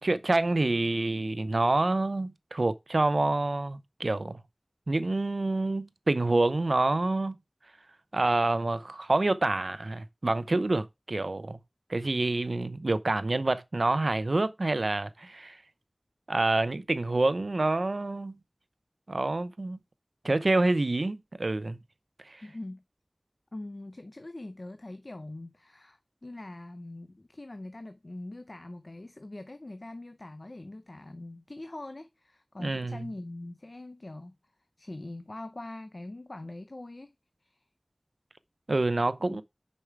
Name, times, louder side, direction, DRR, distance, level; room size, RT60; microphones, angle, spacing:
voice 1, 0.0-4.4 4.9-7.3 8.1-11.6 11.9-15.6 16.3-18.4 19.1-19.8 20.2-21.8 22.2-22.4 32.6-33.1 38.7-39.4, right 2 dB, 90° right, 0.7 m, -27 dB
voice 2, 22.4-22.8 23.5-34.4 34.8-37.1 37.4-37.6 39.2-39.4, left 2 dB, 65° left, 0.6 m, -43 dB
6.5 x 5.3 x 4.6 m
wide cardioid pair, 45°, 0 cm